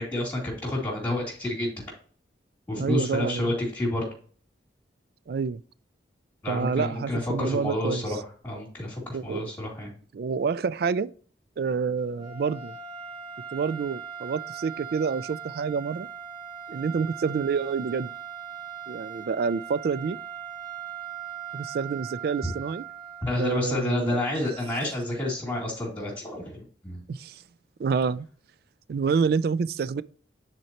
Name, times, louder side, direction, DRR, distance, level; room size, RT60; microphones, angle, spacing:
voice 1, 0.0-1.7 2.7-4.1 6.4-9.9 23.2-27.0, left 1 dB, 10° left, 2.5 m, -29 dB
voice 2, 2.8-3.6 5.3-5.6 6.5-8.0 9.1-9.5 10.1-11.1 11.6-12.7 13.5-16.1 16.7-18.1 18.9-20.2 21.5-22.8 23.4-24.2 27.1-27.4 27.8-28.3 28.9-30.0, right 5 dB, 55° right, 0.3 m, -28 dB
sound 1, 12.1-23.7, right 8 dB, 25° right, 1.1 m, -39 dB
9.3 x 4.4 x 2.9 m
head